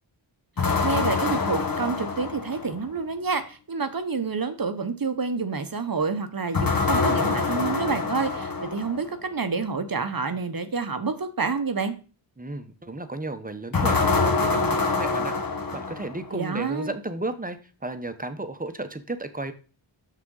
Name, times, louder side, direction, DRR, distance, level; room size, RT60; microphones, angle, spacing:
sound 1, 0.6-2.9 6.5-9.1 13.7-16.3, left 4 dB, 45° left, 0.9 m, -25 dB
voice 1, 0.8-11.9 16.3-16.9, right 4 dB, 45° right, 9 dB, 0.9 m, -28 dB
voice 2, 12.4-15.4 15.7-19.5, right 2 dB, 20° right, 9 dB, 0.8 m, -34 dB
6.6 x 6.1 x 3.8 m, 0.36 s
wide cardioid pair, 65°, 48 cm